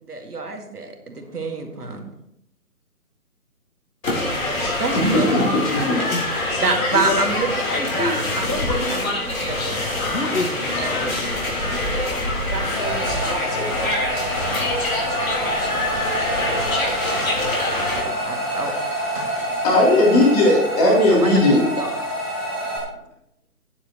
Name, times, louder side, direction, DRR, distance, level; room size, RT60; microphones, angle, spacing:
voice 1, 0.0-2.0 4.8-5.9 6.6-7.5 7.9-10.1 12.5-14.7 15.0-15.3 18.0-18.7 21.1-21.9, right 3 dB, 90° right, 4 dB, 2.1 m, -28 dB
sound 1, 4.0-18.0, left 2 dB, 60° left, 4.0 m, -25 dB
voice 2, 4.6-6.0 6.8-6.9 19.1-21.6, left 1 dB, 25° left, -4 dB, 3.3 m, -18 dB
voice 3, 7.7-8.2 8.5-8.9 10.1-12.8, left 2 dB, 90° left, 6 dB, 1.8 m, -29 dB
sound 2, 12.8-22.8, right 1 dB, ahead, 1.2 m, -27 dB
11.5 x 10.0 x 3.1 m, 0.78 s
figure-of-eight pair, 155°, 45 cm